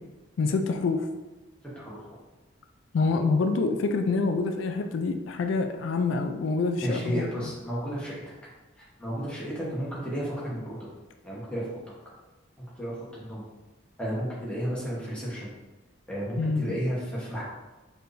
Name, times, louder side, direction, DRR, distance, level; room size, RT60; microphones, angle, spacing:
voice 1, 0.4-1.1 2.9-7.5 16.4-16.8, left 4 dB, 85° left, 6 dB, 0.3 m, -26 dB
voice 2, 1.7-2.2 6.8-8.1 8.8-10.9 11.2-11.8 12.8-13.4 14.0-15.5 16.1-17.4, equal, 5° left, -7 dB, 1.1 m, -32 dB
4.4 x 3.3 x 2.6 m, 1.1 s
head